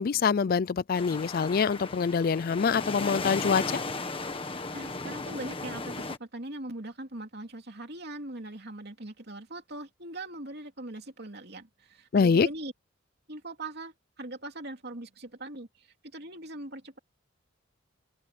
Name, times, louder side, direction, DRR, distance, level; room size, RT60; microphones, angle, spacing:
voice 1, 0.0-3.8 12.1-12.5, left 5 dB, 45° left, 0.4 m, -25 dB
sound 1, 0.9-6.2, left 3 dB, 25° left, 1.6 m, -36 dB
voice 2, 4.7-12.7 13.3-17.0, right 2 dB, 55° right, 3.1 m, -41 dB
head